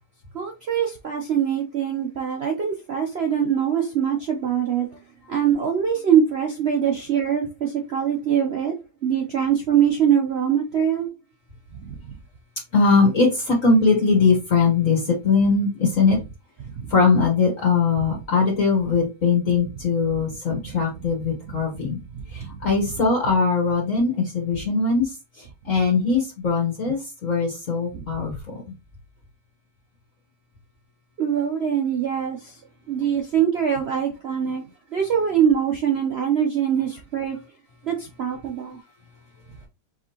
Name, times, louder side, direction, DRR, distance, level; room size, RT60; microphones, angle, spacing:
voice 1, 0.3-4.9 5.3-8.8 9.0-11.1 11.9-12.0 16.7-16.9 18.0-18.1 20.6-20.7 22.3-22.5 31.2-32.6 32.9-34.6 34.9-37.4 37.8-38.8, right 8 dB, 60° right, 0.6 m, -23 dB
voice 2, 12.7-16.2 16.9-22.0 22.3-25.1 25.6-28.6, left 4 dB, 50° left, 1.7 m, -21 dB
4.9 x 3.5 x 2.9 m
omnidirectional pair, 1.9 m